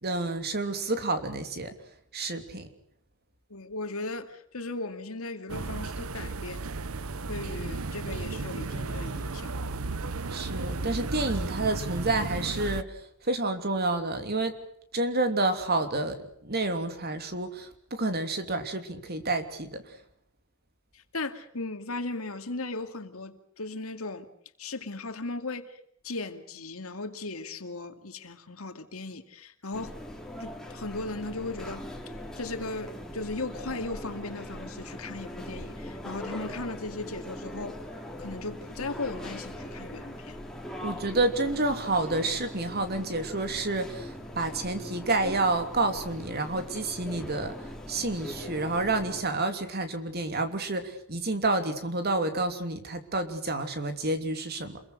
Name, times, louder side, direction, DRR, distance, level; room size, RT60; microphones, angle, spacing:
voice 1, 0.0-1.7 2.1-2.7 10.3-14.6 14.9-20.0 40.8-47.5 47.9-54.8, right 2 dB, 50° right, 8 dB, 3.0 m, -29 dB
voice 2, 3.5-6.6 7.3-9.5 20.9-24.3 24.6-25.8 26.0-29.9 30.4-31.9 32.4-37.8 38.2-40.4, left 2 dB, 80° left, 8 dB, 2.4 m, -37 dB
sound 1, 5.5-12.8, right 3 dB, 85° right, 0.9 m, -34 dB
sound 2, 29.7-49.2, equal, 5° left, 3.3 m, -41 dB
28.5 x 22.0 x 6.5 m, 0.67 s
head